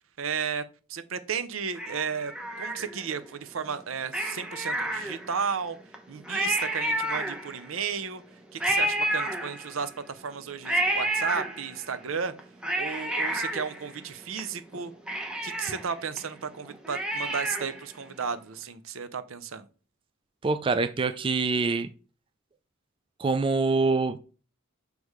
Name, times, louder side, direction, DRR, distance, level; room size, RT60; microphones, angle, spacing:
voice 1, 0.2-0.6 0.9-2.3 2.6-5.8 6.1-8.2 8.5-12.3 12.8-14.9 15.4-19.7, right 6 dB, 75° right, 12 dB, 0.7 m, -33 dB
Cat, 1.8-3.2 4.1-5.5 5.9-6.0 6.2-7.8 8.6-10.0 10.6-11.9 12.4-14.4 14.7-14.8 15.1-17.9 18.2-18.3, right 1 dB, 5° right, 1.0 m, -30 dB
voice 2, 20.4-21.9 23.2-24.2, right 3 dB, 25° right, 10 dB, 0.4 m, -25 dB
6.3 x 3.4 x 4.8 m, 0.36 s
head